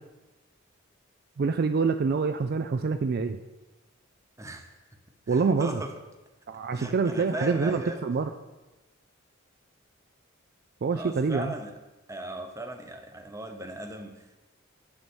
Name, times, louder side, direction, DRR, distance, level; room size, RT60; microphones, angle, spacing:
voice 1, 1.4-3.4 5.3-5.8 6.5-8.3 10.8-11.5, right 4 dB, 45° right, 9 dB, 0.3 m, -26 dB
voice 2, 4.4-4.8 5.3-6.0 6.7-8.0 10.9-11.7 12.1-14.4, right 1 dB, 15° right, 6 dB, 0.8 m, -38 dB
9.6 x 5.4 x 6.2 m, 1.1 s
head